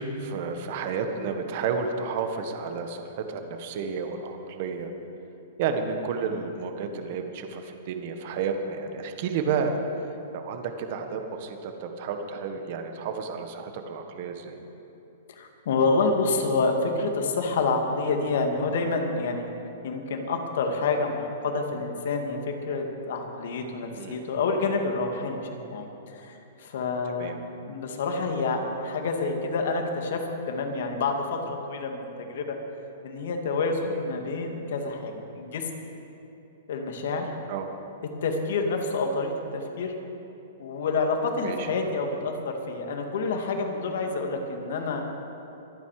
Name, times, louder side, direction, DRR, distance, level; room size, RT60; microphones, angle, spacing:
voice 1, 0.0-4.9 5.6-14.6 23.9-24.2 27.0-27.4 33.9-34.0 37.5-37.7 41.4-41.7, right 5 dB, 50° right, 6 dB, 1.5 m, -31 dB
voice 2, 15.3-19.5 19.8-22.4 22.7-27.4 27.6-32.6 33.0-35.7 36.7-37.3 38.2-39.9 40.6-45.1, left 3 dB, 65° left, 3 dB, 2.1 m, -28 dB
23.5 x 9.3 x 5.0 m, 2.9 s
hypercardioid pair, 150°, 0 cm